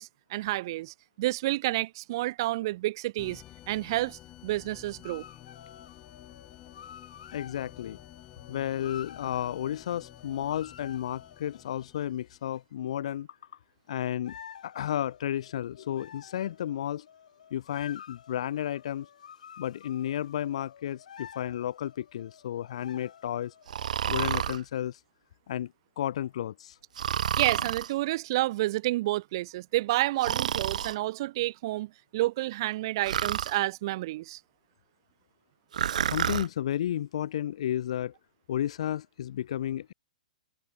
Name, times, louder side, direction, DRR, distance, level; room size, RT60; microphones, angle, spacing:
voice 1, 0.0-5.2 27.3-34.4, right 17 dB, 30° right, 1.0 m, -30 dB
sound 1, 3.2-12.5, left 14 dB, 15° left, 3.9 m, -52 dB
sound 2, 5.0-12.0 14.2-23.9, left 8 dB, 65° left, 4.6 m, -50 dB
voice 2, 7.3-8.0 8.5-13.3 13.9-14.4 14.6-17.1 17.5-19.1 19.6-23.5 24.1-25.0 25.5-25.7 26.0-26.8 36.0-38.1 38.5-39.9, left 11 dB, 50° left, 1.5 m, -32 dB
Breathing, 23.7-24.6 27.0-27.9 30.2-31.0 33.1-33.6 35.7-36.5, right 9 dB, 60° right, 0.9 m, -29 dB
hypercardioid pair, 175°, 4 cm